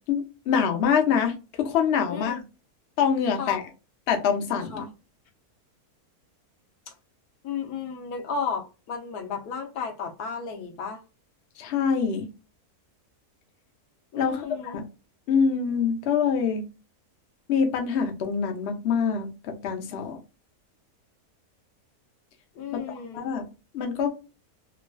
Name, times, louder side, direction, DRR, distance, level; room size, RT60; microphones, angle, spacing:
voice 1, 0.1-2.4 3.0-3.6 4.1-4.8 11.6-12.3 14.2-14.8 15.3-16.6 17.5-20.2 22.9-23.5 23.7-24.1, left 6 dB, 55° left, 0.8 m, -25 dB
voice 2, 2.1-2.4 3.4-3.6 4.7-4.9 7.4-11.0 14.1-14.8 22.5-23.3, left 5 dB, 80° left, 1.2 m, -33 dB
3.1 x 2.5 x 2.2 m
omnidirectional pair, 1.6 m